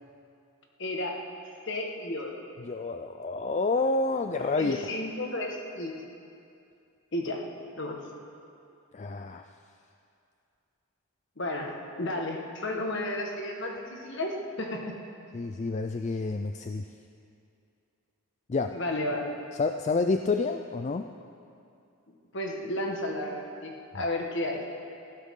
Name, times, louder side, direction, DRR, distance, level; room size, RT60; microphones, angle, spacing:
voice 1, 0.8-1.2 1.7-2.4 4.6-5.9 7.1-7.4 7.8-8.0 11.4-14.8 18.7-19.3 22.3-24.6, left 1 dB, 55° left, 1 dB, 1.6 m, -32 dB
voice 2, 2.6-4.8 8.9-9.4 15.3-16.9 18.5-18.7 19.5-21.1 23.9-24.0, left 3 dB, 30° left, 6 dB, 0.3 m, -29 dB
18.5 x 15.5 x 3.8 m, 2.6 s
head